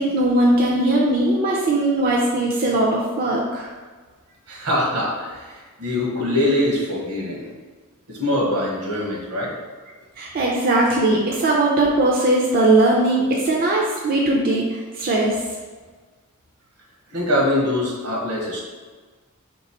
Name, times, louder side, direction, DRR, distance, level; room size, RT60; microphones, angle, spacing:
voice 1, 0.0-3.7 10.2-15.4, right 2 dB, 40° right, -2 dB, 0.5 m, -19 dB
voice 2, 4.5-7.5 8.1-9.5 17.1-18.6, left 1 dB, 80° right, -3 dB, 1.2 m, -23 dB
3.2 x 3.0 x 4.3 m, 1.4 s
head